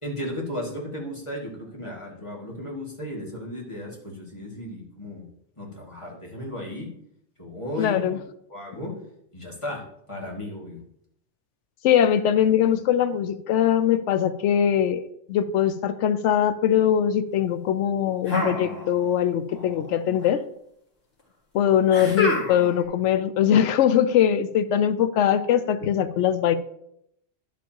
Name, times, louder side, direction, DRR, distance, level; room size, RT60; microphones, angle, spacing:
voice 1, 0.0-5.3 5.6-6.9 7.4-8.2 8.5-8.9 9.3-9.8 10.1-10.8, left 1 dB, 25° left, -3 dB, 2.2 m, -35 dB
voice 2, 7.8-8.2 11.8-20.4 21.5-26.5, left 9 dB, 85° left, 11 dB, 0.9 m, -21 dB
sound 1, 18.3-19.3 19.5-20.3 21.9-22.8, left 2 dB, 60° left, 2.2 m, -28 dB
11.5 x 7.2 x 2.9 m, 0.75 s
omnidirectional pair, 1.2 m